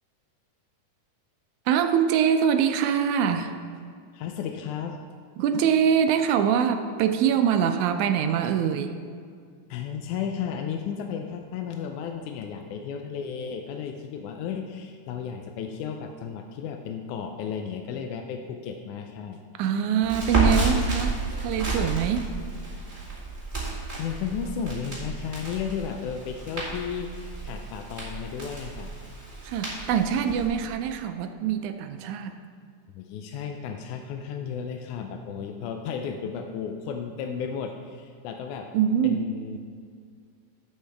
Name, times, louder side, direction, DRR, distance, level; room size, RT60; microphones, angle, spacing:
voice 1, 1.7-3.5 5.4-8.9 19.6-22.3 29.4-32.4 38.7-39.2, right 8 dB, 80° right, 7 dB, 1.8 m, -24 dB
voice 2, 4.1-5.0 9.7-19.4 23.9-28.9 32.9-38.7 39.0-39.6, left 7 dB, 80° left, 5 dB, 1.9 m, -34 dB
Crackle, 20.0-30.5, right 3 dB, 15° right, 2.3 m, -31 dB
11.0 x 8.0 x 3.4 m, 2.2 s
omnidirectional pair, 3.7 m